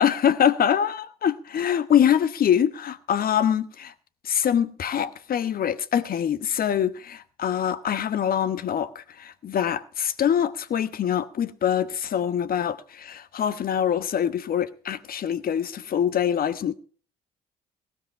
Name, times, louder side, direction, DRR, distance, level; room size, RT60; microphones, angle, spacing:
voice 1, 0.0-3.9 4.2-16.7, left 9 dB, 45° left, 1.1 m, -24 dB
18.0 x 12.5 x 3.4 m
figure-of-eight pair, 45°, 20 cm